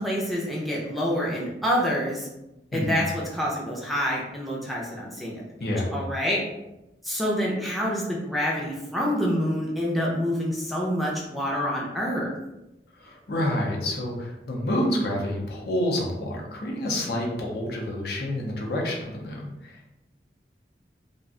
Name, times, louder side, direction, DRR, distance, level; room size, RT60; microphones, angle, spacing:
voice 1, 0.0-2.3 2.7-5.4 5.9-6.4 7.0-12.3, equal, ahead, -4 dB, 0.5 m, -27 dB
voice 2, 2.7-3.0 5.6-6.0 12.9-19.9, left 1 dB, 60° left, -1 dB, 0.6 m, -28 dB
2.5 x 2.1 x 3.6 m, 0.95 s
head